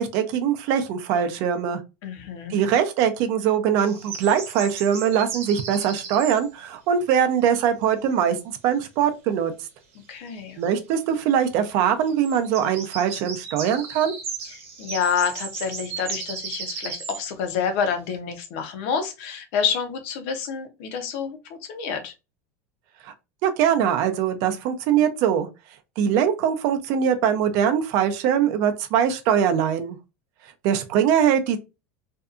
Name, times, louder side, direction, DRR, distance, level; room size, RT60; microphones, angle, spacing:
voice 1, 0.0-1.8 2.5-8.4 8.6-9.5 10.6-14.1 23.4-25.5 26.0-30.0 30.6-31.6, right 8 dB, 50° right, 0.4 m, -22 dB
voice 2, 2.0-2.6 10.1-10.6 14.4-22.1, left 6 dB, 55° left, 0.6 m, -28 dB
sound 1, 3.8-6.5 10.3-10.4 10.6-10.7 12.1-17.2, right 5 dB, 90° right, 0.8 m, -35 dB
2.6 x 2.2 x 2.4 m
supercardioid pair, 165°, 7 cm